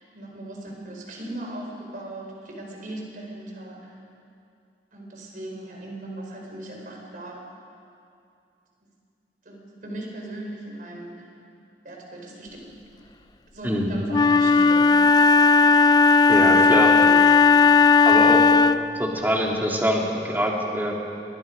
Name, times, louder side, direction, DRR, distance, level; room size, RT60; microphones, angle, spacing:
voice 1, 0.1-4.0 4.9-7.4 9.4-11.3 11.8-12.7 13.5-15.2 16.3-17.2, right 1 dB, 50° right, -1 dB, 4.6 m, -38 dB
voice 2, 13.6-13.9 16.3-16.9 18.0-18.4 19.0-20.9, equal, 10° right, -2 dB, 2.7 m, -24 dB
Wind instrument woodwind instrument, 14.1-18.9, left 4 dB, 25° left, 0.4 m, -16 dB
25.5 x 21.0 x 5.2 m, 2.5 s
head